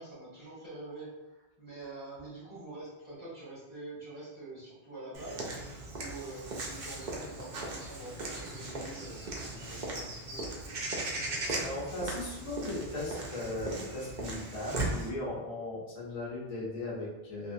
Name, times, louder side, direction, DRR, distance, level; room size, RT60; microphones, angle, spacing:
voice 1, 0.0-5.5 5.9-10.5, right 2 dB, 20° left, -10 dB, 1.2 m, -46 dB
Walk footsteps / Bird vocalization bird call bird song, 5.1-15.1, right 2 dB, 55° right, 0.6 m, -38 dB
voice 2, 11.5-17.5, left 2 dB, 35° left, -6 dB, 0.9 m, -37 dB
2.6 x 2.4 x 2.6 m, 1.0 s
omnidirectional pair, 1.0 m